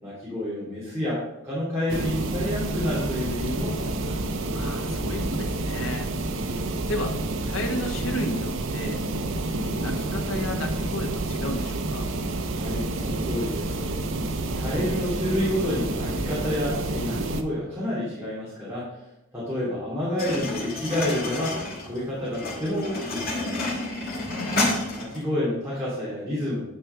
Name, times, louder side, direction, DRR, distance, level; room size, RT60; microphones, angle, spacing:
voice 1, 0.0-4.3 6.5-6.6 12.5-13.8 14.5-18.9 19.3-21.6 21.8-23.8 24.9-26.6, left 1 dB, 10° right, -11 dB, 2.7 m, -29 dB
sound 1, 1.9-17.4, right 2 dB, 65° right, 0.8 m, -29 dB
voice 2, 4.5-6.1 6.9-7.2 7.4-9.0 9.7-12.1 24.2-24.9, left 1 dB, 70° left, 1 dB, 1.4 m, -33 dB
sound 2, 20.2-25.2, left 2 dB, 45° left, 2.1 m, -30 dB
10.0 x 4.6 x 5.7 m, 0.91 s
head